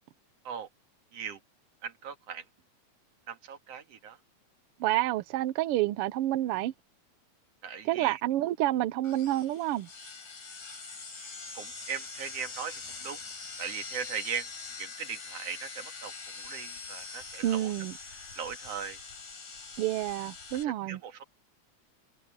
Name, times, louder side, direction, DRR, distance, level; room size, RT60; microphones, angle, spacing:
voice 1, 1.8-2.4 3.3-4.2 7.6-8.2 11.6-13.2 13.6-14.5 14.8-17.7 18.4-19.0 20.6-21.2, right 7 dB, 60° right, 2.8 m, -39 dB
voice 2, 4.8-6.7 7.8-9.9 17.4-17.9 19.8-21.0, right 14 dB, 80° right, 1.3 m, -29 dB
sound 1, 9.0-20.6, left 4 dB, 75° left, 6.8 m, -43 dB
omnidirectional pair, 3.4 m